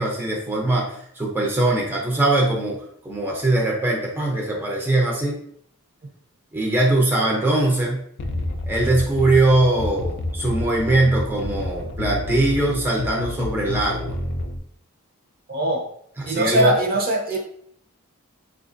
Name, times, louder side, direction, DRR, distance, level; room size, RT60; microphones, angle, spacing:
voice 1, 0.0-5.4 6.5-8.0 8.7-14.1 16.2-16.7, right 2 dB, 10° right, -3 dB, 0.6 m, -21 dB
sound 1, 8.2-14.6, left 1 dB, 55° left, 0.4 m, -29 dB
voice 2, 15.5-15.8 16.3-17.4, right 1 dB, 45° right, 1 dB, 0.8 m, -21 dB
4.5 x 2.4 x 2.5 m, 0.66 s
head